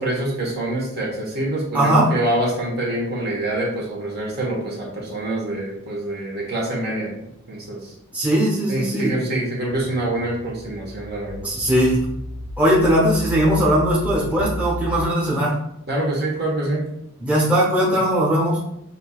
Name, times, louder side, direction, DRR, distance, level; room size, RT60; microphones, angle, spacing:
voice 1, 0.0-7.9 8.7-11.5 15.9-16.8, right 1 dB, 50° right, -3 dB, 1.4 m, -25 dB
voice 2, 1.7-2.1 8.1-9.1 11.4-12.0 12.6-15.6 17.2-18.6, right 1 dB, 5° right, -6 dB, 0.9 m, -19 dB
sound 1, 9.7-15.1, left 1 dB, 70° left, 0.5 m, -33 dB
6.7 x 2.8 x 2.4 m, 0.79 s
head